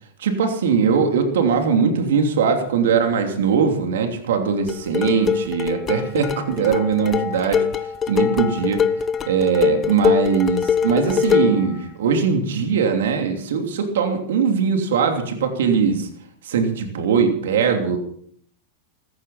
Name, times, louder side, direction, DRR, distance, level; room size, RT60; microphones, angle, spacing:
voice 1, 0.2-8.8 9.3-16.1 16.4-18.0, right 6 dB, 90° right, 4 dB, 2.9 m, -20 dB
sound 1, 4.7-11.7, left 7 dB, 25° left, 1.1 m, -23 dB
16.0 x 14.5 x 5.7 m, 0.64 s
supercardioid pair, 140°, 0 cm